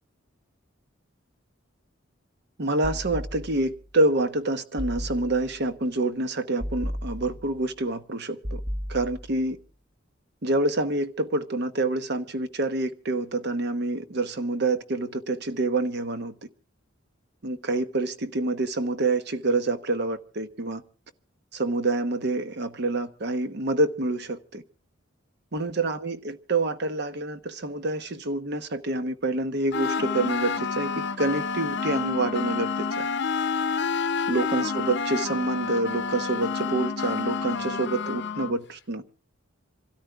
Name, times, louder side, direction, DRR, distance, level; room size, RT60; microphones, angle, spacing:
voice 1, 2.6-8.6 8.9-9.6 10.4-16.3 17.4-20.8 21.5-24.6 25.5-33.1 34.3-39.0, right 2 dB, 55° right, 1.0 m, -27 dB
sound 1, 2.8-3.9 4.8-5.7 6.6-7.7 8.4-9.5, equal, 20° right, 1.0 m, -35 dB
sound 2, 29.7-38.6, left 5 dB, 60° left, 0.7 m, -29 dB
26.5 x 13.0 x 3.5 m
head